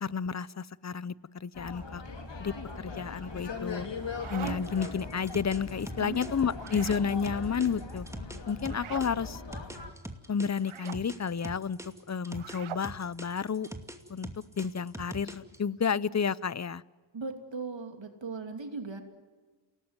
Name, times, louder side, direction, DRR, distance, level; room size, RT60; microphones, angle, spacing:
voice 1, 0.0-2.0 2.4-3.9 4.3-8.1 8.5-9.4 10.3-13.7 14.1-14.3 14.6-16.8, left 6 dB, 35° left, 20 dB, 0.7 m, -31 dB
sound 1, 1.5-9.9, left 4 dB, 65° left, 3.2 m, -40 dB
sound 2, 3.8-4.9 6.5-7.1 8.6-9.1 10.6-11.0 12.3-12.9, right 10 dB, 85° right, 0.9 m, -42 dB
sound 3, 4.5-9.1 9.5-12.6 12.8-15.6, right 1 dB, 5° right, 2.4 m, -42 dB
voice 2, 17.1-19.0, right 4 dB, 70° right, 5 dB, 2.9 m, -38 dB
28.0 x 18.5 x 9.6 m, 1.4 s
cardioid pair, 60°, 47 cm